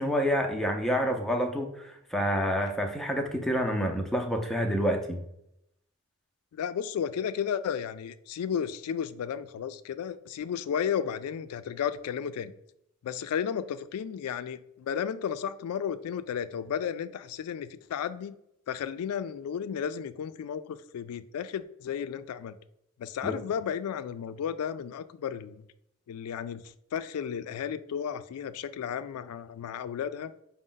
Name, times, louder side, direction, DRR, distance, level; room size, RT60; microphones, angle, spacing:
voice 1, 0.0-5.2 23.2-23.3, equal, ahead, 2 dB, 0.5 m, -28 dB
voice 2, 6.5-12.5 13.0-18.3 18.7-22.5 23.0-25.6 26.1-26.6 26.9-30.3, left 8 dB, 90° left, 15 dB, 0.3 m, -33 dB
5.0 x 2.1 x 3.8 m, 0.78 s
head